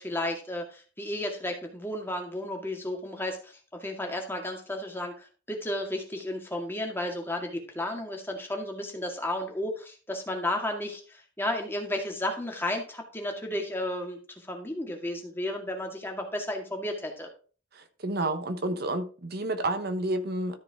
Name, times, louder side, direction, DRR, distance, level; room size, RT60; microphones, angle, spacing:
voice 1, 0.0-14.2 14.5-17.3, left 1 dB, 10° left, 2.0 m, -33 dB
voice 2, 17.7-20.6, right 2 dB, 55° right, 1.1 m, -30 dB
13.0 x 4.9 x 4.7 m
head